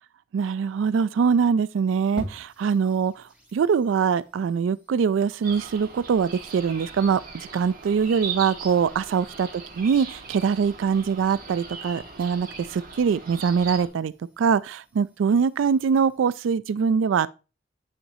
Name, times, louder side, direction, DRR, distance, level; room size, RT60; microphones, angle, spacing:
voice 1, 0.3-3.2 3.5-9.5 9.8-17.3, right 6 dB, 80° right, 0.3 m, -23 dB
sound 1, 2.2-16.2, equal, 5° right, 3.1 m, -49 dB
sound 2, 5.4-13.9, right 5 dB, 50° right, 1.9 m, -39 dB
9.7 x 5.9 x 2.7 m
head